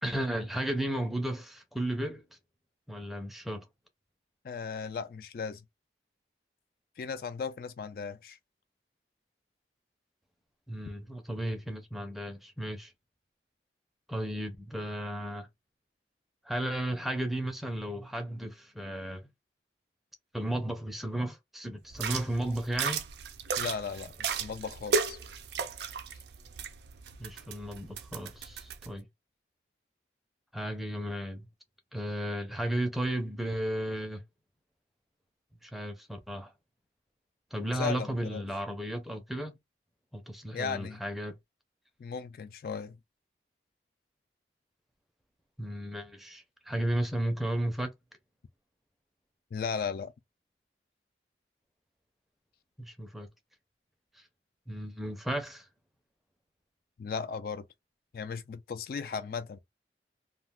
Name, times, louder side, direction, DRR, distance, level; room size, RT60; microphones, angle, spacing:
voice 1, 0.0-2.2 2.9-3.7 10.7-12.9 14.1-15.5 16.4-19.3 20.3-23.0 27.2-29.1 30.5-31.5 31.9-34.2 35.6-36.5 37.5-39.6 40.1-41.4 45.6-47.9 52.8-53.3 54.7-55.7, right 1 dB, ahead, 0.5 m, -34 dB
voice 2, 4.4-5.6 7.0-8.4 23.6-25.2 37.7-38.4 40.5-41.0 42.0-43.0 49.5-50.1 57.0-57.6 58.1-59.6, left 5 dB, 55° left, 0.3 m, -36 dB
sound 1, 21.9-28.9, right 5 dB, 70° right, 0.4 m, -35 dB
2.3 x 2.2 x 3.5 m
head